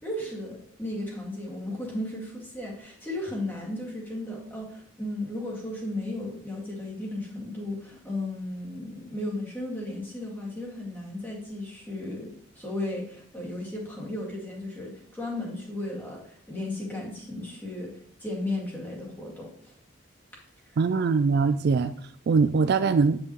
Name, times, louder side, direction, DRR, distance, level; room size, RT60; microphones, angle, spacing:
voice 1, 0.0-19.7 20.7-20.8, left 1 dB, 10° left, -4 dB, 2.1 m, -35 dB
voice 2, 20.8-21.9 22.3-23.2, right 4 dB, 50° right, 11 dB, 0.3 m, -22 dB
9.2 x 5.6 x 3.1 m, 0.64 s
head